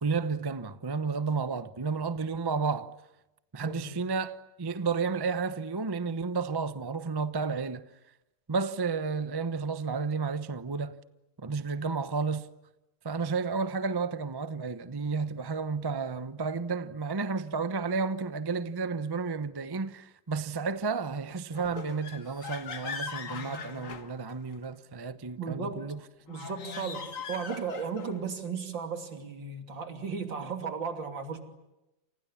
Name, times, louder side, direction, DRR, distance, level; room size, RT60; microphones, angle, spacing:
voice 1, 0.0-2.9 3.5-7.9 8.5-11.0 11.4-12.5 13.0-26.0, right 4 dB, 35° right, 0.3 m, -32 dB
voice 2, 3.6-4.0 25.4-25.8 26.3-31.4, right 5 dB, 70° right, 3.7 m, -35 dB
sound 1, 21.5-24.6 26.2-28.3, left 5 dB, 45° left, 1.8 m, -40 dB
29.0 x 28.5 x 7.2 m
omnidirectional pair, 2.2 m